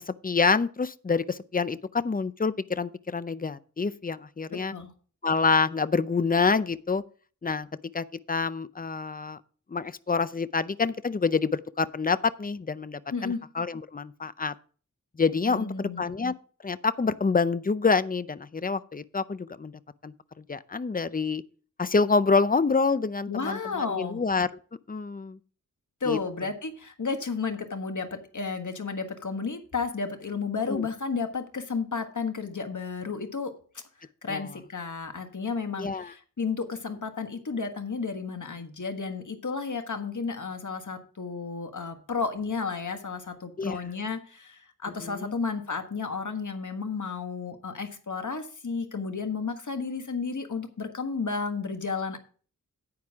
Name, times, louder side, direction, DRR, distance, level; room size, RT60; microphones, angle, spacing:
voice 1, 0.1-4.7 5.2-7.0 7.4-7.7 7.9-9.4 9.7-14.5 15.2-16.3 16.6-21.4 21.8-24.5 24.9-25.4 26.1-26.2 30.7-30.9 34.3-34.5 35.8-36.1 43.6-43.8 45.0-45.3, left 4 dB, 25° left, 0.5 m, -27 dB
voice 2, 4.5-4.9 13.1-13.4 15.5-16.1 23.3-24.2 26.0-33.5 34.0-52.2, left 4 dB, 70° left, 1.5 m, -32 dB
9.5 x 9.3 x 3.6 m
wide cardioid pair, 70°, 32 cm